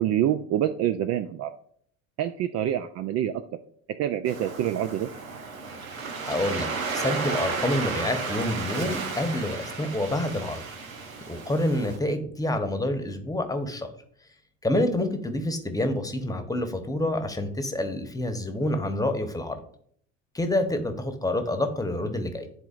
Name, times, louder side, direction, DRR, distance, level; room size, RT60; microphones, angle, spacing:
voice 1, 0.0-1.5 2.2-3.3 4.0-5.1, right 11 dB, 40° right, 9 dB, 0.4 m, -26 dB
Waves surf, 4.3-12.0, right 4 dB, 90° right, 0.8 m, -33 dB
voice 2, 6.2-6.7 6.9-10.6 11.3-13.9 14.6-19.6 20.3-22.5, left 1 dB, 10° left, 7 dB, 1.0 m, -27 dB
10.5 x 3.8 x 2.5 m, 0.62 s
hypercardioid pair, 65°, 40 cm